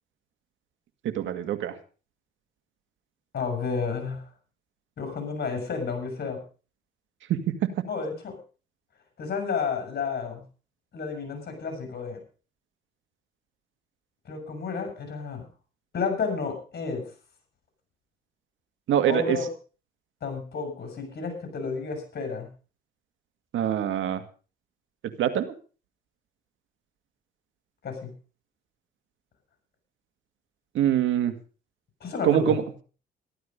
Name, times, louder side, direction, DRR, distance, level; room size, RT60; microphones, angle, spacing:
voice 1, 1.2-1.7 7.3-7.5 18.9-19.4 23.5-24.2 25.2-25.5 30.8-31.3 32.2-32.6, right 10 dB, 75° right, 9 dB, 2.1 m, -24 dB
voice 2, 3.3-4.2 5.0-6.4 7.9-8.4 9.2-10.4 10.9-12.2 14.2-15.5 15.9-17.1 19.1-19.5 20.2-22.5 27.8-28.1 32.0-32.6, left 5 dB, 55° left, 6 dB, 7.6 m, -31 dB
14.5 x 13.0 x 5.3 m, 0.37 s
cardioid pair, 90°, 20 cm